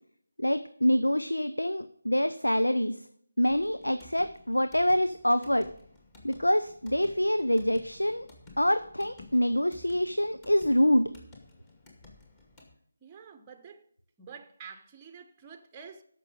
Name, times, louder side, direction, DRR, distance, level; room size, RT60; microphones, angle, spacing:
voice 1, 0.4-2.9 3.4-5.7 6.2-8.3 8.6-11.1, equal, 90° left, 0.7 m, -26 dB
sound 1, 3.5-12.7, left 2 dB, 15° left, 2.2 m, -54 dB
voice 2, 13.0-13.8 14.2-16.0, right 6 dB, 15° right, 0.9 m, -48 dB
14.0 x 6.1 x 5.1 m
figure-of-eight pair, 160°, 0 cm